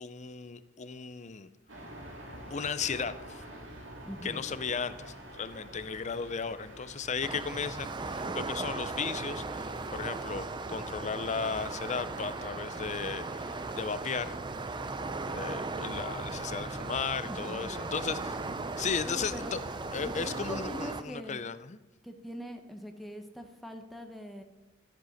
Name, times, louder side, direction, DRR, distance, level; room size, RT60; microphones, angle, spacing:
voice 1, 0.0-1.5 2.5-3.4 4.2-14.3 15.3-18.4 18.8-19.6 19.9-21.8, left 5 dB, 35° left, 13 dB, 0.5 m, -35 dB
sound 1, 1.7-20.6, right 1 dB, 75° right, 2.2 m, -48 dB
voice 2, 4.0-4.4 17.2-18.2 19.0-19.6 20.0-21.4 22.0-24.4, equal, ahead, 4 dB, 0.9 m, -42 dB
sound 2, 7.2-21.0, right 3 dB, 25° right, 0.5 m, -37 dB
13.0 x 7.8 x 6.4 m, 1.1 s
head